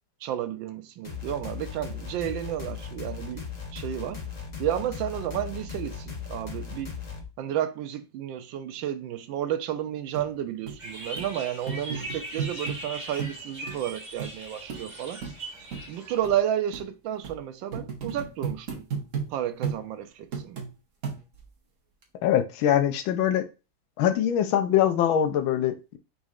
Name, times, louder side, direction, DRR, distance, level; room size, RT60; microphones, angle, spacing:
voice 1, 0.2-3.5 3.7-4.2 4.6-6.9 7.4-15.2 15.9-18.9 19.3-20.7, right 11 dB, 75° right, 1.3 m, -31 dB
sound 1, 1.0-7.2, left 6 dB, 35° left, 0.7 m, -37 dB
sound 2, 10.2-10.3 10.7-10.8 11.2-11.3 11.7-12.8 13.2-13.4 13.7-13.8 14.2-14.3 14.7-14.8 15.2-15.4 15.7-15.8 16.2-16.3 16.7-16.9 17.2-17.4 17.7-19.3 19.6-19.8 20.3-20.7 21.0-21.5 22.0-22.1, right 6 dB, 50° right, 1.1 m, -33 dB
sound 3, 10.8-16.2, right 1 dB, 25° right, 1.4 m, -40 dB
voice 2, 22.2-23.4 24.0-26.0, left 10 dB, 80° left, 1.5 m, -23 dB
5.1 x 4.0 x 2.4 m
omnidirectional pair, 2.2 m